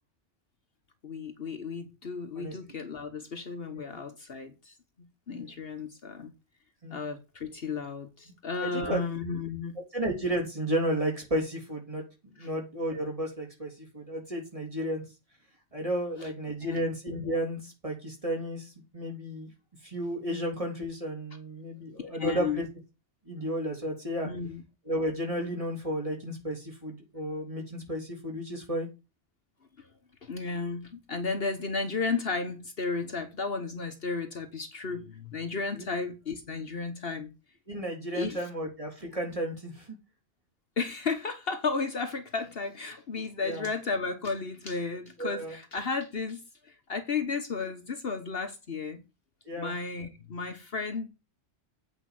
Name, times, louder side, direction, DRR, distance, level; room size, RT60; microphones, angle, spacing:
voice 1, 1.0-6.3 6.9-9.8 12.4-12.5 16.2-16.3 16.6-16.9 22.0-22.7 24.2-24.6 30.2-37.3 38.1-38.4 40.8-46.4 46.6-49.0 49.6-51.1, left 4 dB, 55° left, 1.3 m, -33 dB
voice 2, 8.6-9.0 9.9-12.0 12.4-15.0 15.7-19.5 19.8-22.6 23.3-24.3 24.9-28.9 35.7-35.8 37.7-39.9 43.4-43.7 45.2-45.6 49.5-49.7, right 1 dB, 30° right, 3.5 m, -33 dB
8.5 x 5.0 x 7.6 m
omnidirectional pair, 1.2 m